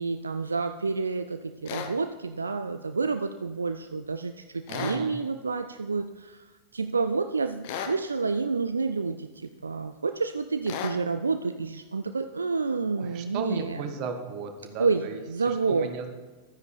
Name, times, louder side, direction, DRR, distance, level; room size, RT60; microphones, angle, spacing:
voice 1, 0.0-6.4 6.7-13.8 14.8-15.9, right 4 dB, 75° right, 9 dB, 0.3 m, -29 dB
sound 1, 1.7-1.9 4.7-5.0 7.6-8.0 10.7-11.0, left 8 dB, 50° left, 0.8 m, -34 dB
voice 2, 4.7-5.2 13.0-15.2 15.5-16.1, right 5 dB, 45° right, 6 dB, 1.2 m, -35 dB
12.0 x 9.5 x 3.3 m, 1.3 s
figure-of-eight pair, 90°, 0 cm